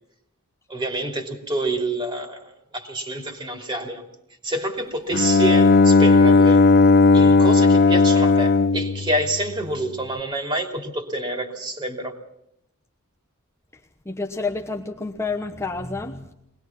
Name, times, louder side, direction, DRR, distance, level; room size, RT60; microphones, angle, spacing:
voice 1, 0.7-4.0 4.4-6.6 7.1-12.1, right 1 dB, 20° right, 4 dB, 3.0 m, -27 dB
Bowed string instrument, 5.1-10.0, left 3 dB, 45° left, 0.7 m, -16 dB
voice 2, 13.7-16.3, left 3 dB, 10° left, 0 dB, 1.0 m, -30 dB
23.0 x 19.5 x 6.0 m, 0.80 s
head